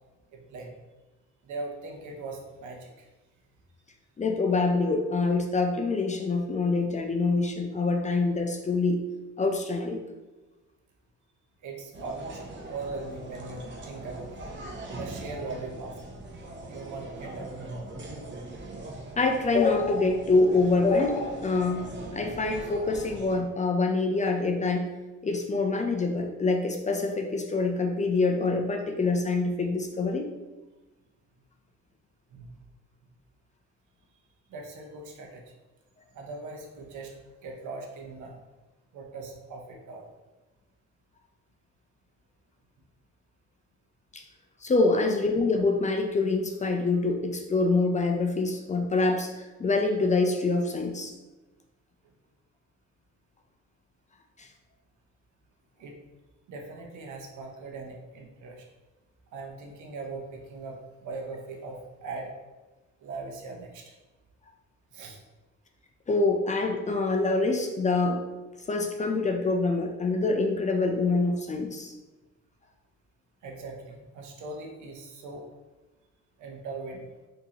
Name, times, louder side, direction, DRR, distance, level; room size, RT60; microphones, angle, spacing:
voice 1, 0.3-0.7 1.4-3.1 11.6-14.4 14.9-15.9 16.7-17.6 32.3-32.6 34.5-35.4 36.1-37.1 37.4-38.4 38.9-40.1 55.8-56.0 56.5-58.7 59.3-62.3 63.0-64.0 64.9-65.2 73.4-75.5 76.4-77.1, right 3 dB, 75° right, 1 dB, 0.7 m, -40 dB
voice 2, 4.2-9.0 9.4-10.0 19.2-21.8 22.1-24.9 25.2-30.3 44.1-44.2 44.6-51.1 66.1-68.2 68.7-71.9, left 3 dB, 25° left, 3 dB, 0.4 m, -25 dB
sound 1, 11.9-23.4, right 2 dB, 40° right, 0.7 m, -41 dB
3.7 x 2.8 x 2.8 m, 1.2 s
cardioid pair, 90°, 30 cm